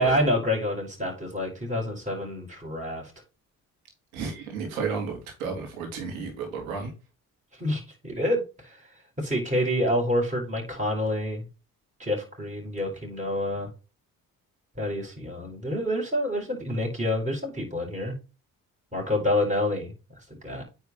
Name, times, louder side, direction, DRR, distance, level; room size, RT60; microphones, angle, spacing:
voice 1, 0.0-3.0 7.6-8.4 9.2-11.4 12.0-13.7 14.8-18.1 18.9-19.9 20.4-20.6, left 1 dB, 15° right, -2 dB, 5.1 m, -27 dB
voice 2, 4.1-6.9, right 5 dB, 85° right, 2 dB, 3.1 m, -32 dB
9.5 x 4.4 x 4.2 m, 0.30 s
hypercardioid pair, 50°, 41 cm